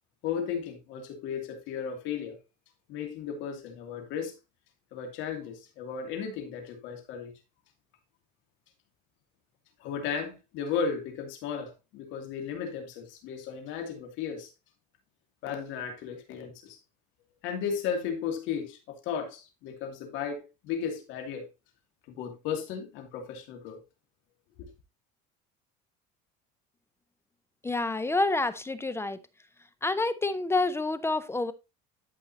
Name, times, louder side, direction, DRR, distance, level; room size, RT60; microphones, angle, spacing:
voice 1, 0.2-2.4 2.9-4.3 4.9-7.3 9.8-14.5 15.4-16.8 17.4-21.5 22.1-23.8 24.6-24.7, left 7 dB, 70° left, 2.6 m, -35 dB
voice 2, 27.6-29.2 29.8-31.5, left 2 dB, 10° left, 0.6 m, -28 dB
12.5 x 5.4 x 2.8 m
cardioid pair, 120°, 20 cm